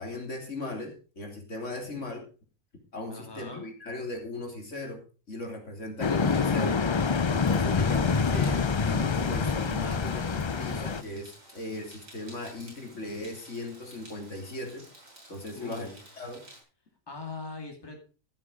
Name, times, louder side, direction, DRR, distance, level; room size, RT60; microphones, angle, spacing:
voice 1, 0.0-2.2 2.9-14.8 15.3-15.9 16.2-16.4, left 2 dB, 65° left, 2 dB, 3.6 m, -38 dB
voice 2, 3.1-3.7 15.5-16.2 17.1-18.0, left 3 dB, 20° left, 3 dB, 2.4 m, -41 dB
sound 1, 6.0-11.0, left 5 dB, 45° left, 0.3 m, -26 dB
sound 2, 6.2-16.6, right 1 dB, 90° right, 5.0 m, -53 dB
14.5 x 8.4 x 5.0 m, 0.36 s
omnidirectional pair, 1.4 m